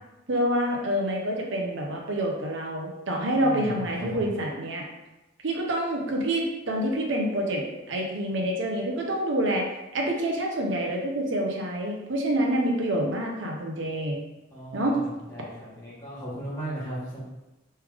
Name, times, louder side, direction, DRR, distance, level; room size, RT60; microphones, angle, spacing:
voice 1, 0.3-4.8 5.4-9.7 9.9-14.2 14.7-15.0, right 1 dB, 70° right, 0 dB, 0.7 m, -27 dB
voice 2, 3.4-3.8 4.1-4.3 14.5-17.2, right 1 dB, 15° left, -10 dB, 1.3 m, -36 dB
3.3 x 3.3 x 3.4 m, 0.99 s
head